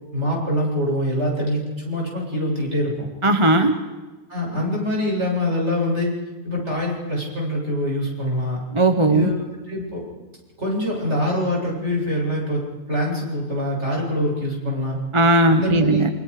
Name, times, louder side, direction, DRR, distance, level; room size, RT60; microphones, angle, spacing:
voice 1, 0.1-2.9 4.3-6.1 6.4-8.6 9.1-9.3 9.7-10.0 10.6-12.6 12.9-15.0 15.5-16.0, left 1 dB, 50° right, -2 dB, 8.2 m, -24 dB
voice 2, 3.2-3.7 8.7-9.3 15.1-16.1, right 2 dB, 25° right, 8 dB, 1.2 m, -17 dB
28.0 x 26.0 x 5.0 m, 1.2 s
omnidirectional pair, 1.5 m